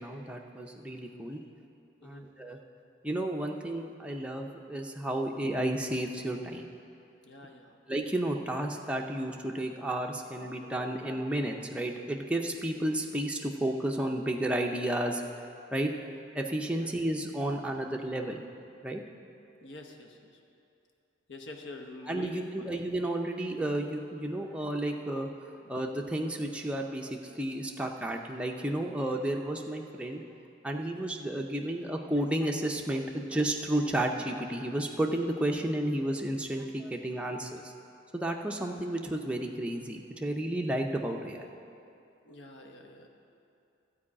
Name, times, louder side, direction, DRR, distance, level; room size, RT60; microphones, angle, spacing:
voice 1, 0.0-1.4 2.0-2.6 3.0-6.7 7.9-15.2 15.7-15.9 16.3-18.4 18.8-19.0 22.1-25.3 25.7-30.2 30.6-37.7 38.1-41.4, right 1 dB, 5° right, 1 dB, 0.6 m, -32 dB
voice 2, 7.2-7.7 16.7-16.9 19.6-20.3 21.3-22.7 42.2-43.1, left 1 dB, 65° left, 3 dB, 1.0 m, -46 dB
12.5 x 4.7 x 8.5 m, 2.7 s
head